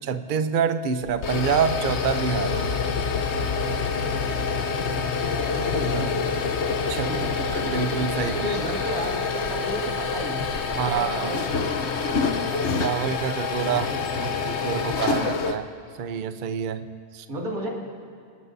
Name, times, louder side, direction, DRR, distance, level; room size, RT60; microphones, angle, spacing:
voice 1, 0.1-2.6 6.9-7.1 7.5-8.3 10.8-11.2 12.8-13.9 14.4-15.7 16.0-17.2, right 7 dB, 50° right, 9 dB, 0.7 m, -26 dB
sound 1, 1.0-15.6, left 5 dB, 55° left, 1.1 m, -27 dB
voice 2, 5.5-6.2 7.1-7.4 8.2-12.1 13.9-14.4 17.3-17.7, right 1 dB, 90° right, -2 dB, 2.9 m, -33 dB
27.0 x 18.5 x 2.7 m, 2.4 s
omnidirectional pair, 1.5 m